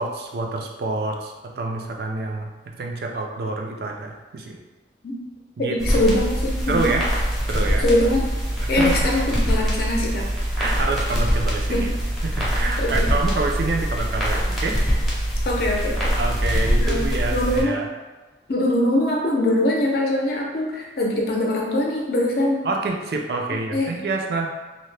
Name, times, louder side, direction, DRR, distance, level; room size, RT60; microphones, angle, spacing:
voice 1, 0.0-2.5 2.8-4.6 5.6-6.1 6.7-7.0 7.5-7.9 8.6-9.1 10.6-11.9 12.2-14.8 16.2-17.9 22.6-24.5, right 3 dB, 60° right, 1 dB, 0.4 m, -27 dB
voice 2, 5.7-6.9 7.8-8.2 8.7-10.2 11.7-11.8 12.8-13.1 15.4-16.1 16.5-17.0 17.3-17.8 18.5-22.6 23.7-23.9, left 1 dB, 60° left, -1 dB, 0.5 m, -22 dB
sound 1, 5.8-17.6, equal, ahead, 0.6 m, -23 dB
2.7 x 2.1 x 3.2 m, 1.2 s
head